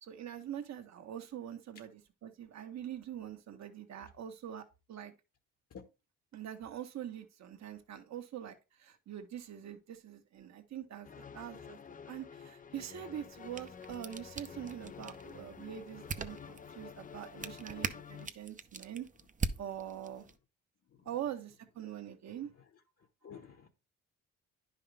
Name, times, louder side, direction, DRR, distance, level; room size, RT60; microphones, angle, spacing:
voice 1, 0.0-5.1 6.3-11.8 12.1-19.1 19.6-20.3 21.0-22.5, right 10 dB, 65° right, 1.4 m, -44 dB
sound 1, 11.0-18.3, left 7 dB, 30° left, 0.5 m, -50 dB
sound 2, 13.3-20.4, right 5 dB, 25° right, 0.7 m, -43 dB
voice 2, 22.3-22.7 23.0-23.7, left 6 dB, 50° left, 1.3 m, -53 dB
10.0 x 5.6 x 3.4 m
cardioid pair, 90°, 30 cm